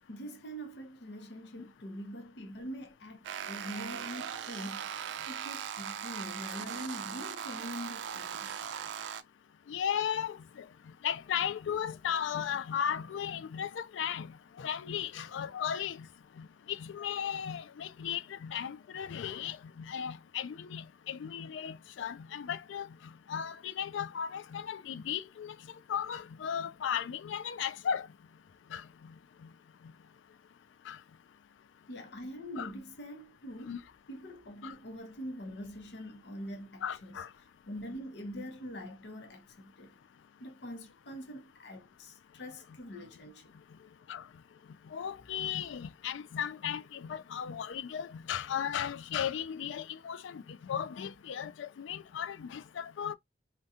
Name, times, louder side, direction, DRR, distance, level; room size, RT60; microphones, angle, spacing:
voice 1, 0.1-4.8 5.2-8.7 21.4-21.5 31.9-33.7 34.1-37.2 37.7-40.0 40.4-43.5, equal, 65° left, 0.7 m, -44 dB
sound 1, 3.2-9.2, right 8 dB, 70° right, 0.3 m, -39 dB
voice 2, 9.7-10.4 11.0-16.1 16.4-22.9 23.3-25.6 25.9-28.1 28.7-29.1 29.4-29.5 30.9-31.0 32.6-32.7 33.6-33.8 34.6-34.7 36.8-37.3 44.1-44.2 44.9-53.1, left 8 dB, 80° left, 0.4 m, -36 dB
2.7 x 2.2 x 3.6 m
head